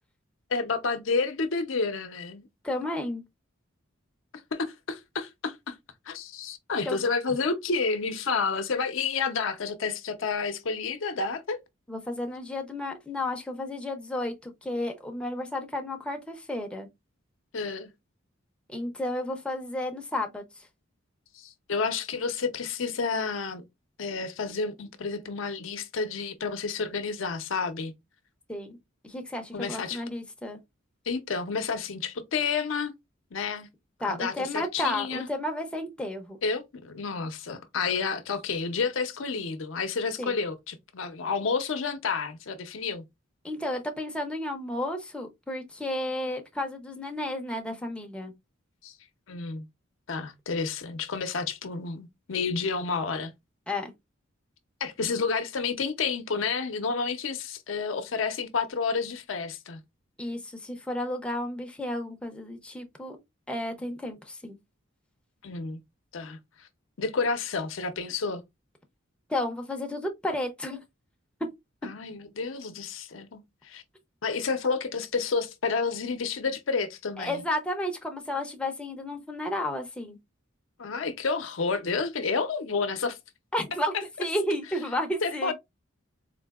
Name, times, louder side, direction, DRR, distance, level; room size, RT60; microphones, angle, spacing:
voice 1, 0.5-2.5 4.5-5.8 6.1-11.6 17.5-17.9 21.3-23.6 24.0-27.9 29.5-30.0 31.1-32.9 33.3-33.7 34.0-35.3 36.4-43.0 48.8-48.9 49.3-49.6 50.1-53.3 54.8-59.8 65.4-65.8 66.1-66.7 67.0-68.4 71.8-73.8 74.2-77.4 80.8-83.2 85.2-85.5, left 4 dB, 75° left, 0.6 m, -30 dB
voice 2, 2.6-3.2 6.9-7.0 11.9-16.9 18.7-20.4 28.5-28.8 29.0-30.6 34.0-36.4 40.2-40.3 43.4-48.3 53.7-53.9 60.2-63.2 63.5-64.6 69.3-70.8 77.2-80.2 83.5-85.5, left 1 dB, 5° left, 0.5 m, -32 dB
3.9 x 2.6 x 2.3 m
head